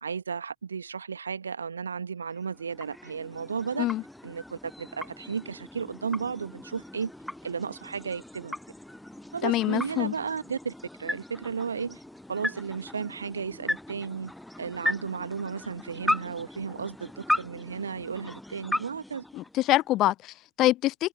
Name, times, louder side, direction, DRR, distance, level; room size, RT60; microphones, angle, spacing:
voice 1, 0.0-3.9 4.2-7.1 7.4-8.6 9.3-10.7 11.0-12.0 12.3-14.3 14.6-19.2, right 6 dB, 70° right, 2.0 m, -34 dB
sound 1, 2.2-20.0, left 1 dB, 5° left, 1.0 m, -37 dB
voice 2, 9.4-10.1 19.3-21.1, left 16 dB, 35° left, 0.5 m, -25 dB
figure-of-eight pair, 90°, 0 cm